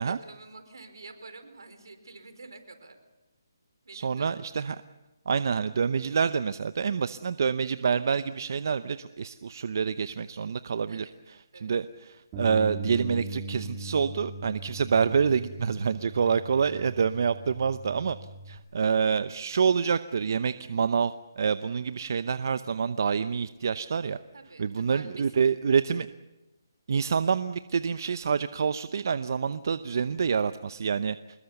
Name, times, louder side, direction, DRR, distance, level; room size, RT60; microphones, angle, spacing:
voice 1, 0.0-3.0 3.8-4.5 10.9-11.2 11.5-11.7 18.8-18.9 24.3-25.5, right 3 dB, 85° right, 8 dB, 4.5 m, -48 dB
voice 2, 3.9-4.8 5.3-18.2 18.5-24.2 24.6-26.1 26.9-31.2, right 6 dB, 55° right, 13 dB, 0.8 m, -27 dB
Bass guitar, 12.3-18.6, right 2 dB, 20° right, 3.3 m, -39 dB
25.0 x 21.5 x 7.1 m, 1.0 s
hypercardioid pair, 160°, 2 cm